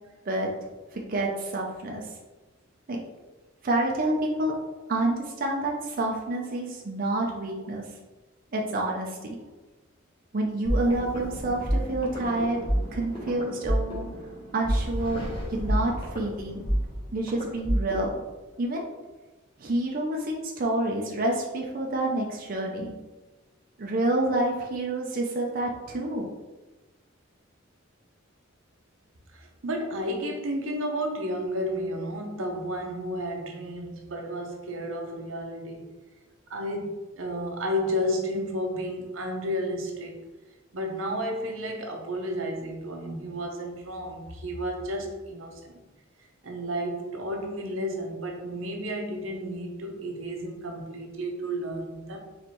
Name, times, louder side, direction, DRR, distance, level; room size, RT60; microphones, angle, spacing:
voice 1, 0.3-2.1 2.9-3.0 3.6-4.5 4.9-7.9 8.5-9.3 10.3-12.7 12.9-14.0 14.5-16.7 17.1-18.1 18.6-18.9 19.6-22.9 23.8-26.3, right 2 dB, 45° right, 0.5 m, -28 dB
sound 1, 10.7-18.2, equal, 25° left, 1.0 m, -30 dB
voice 2, 29.3-35.9 36.5-40.2 40.7-45.8 46.4-52.2, equal, 85° right, 0.7 m, -32 dB
4.3 x 3.2 x 3.0 m
head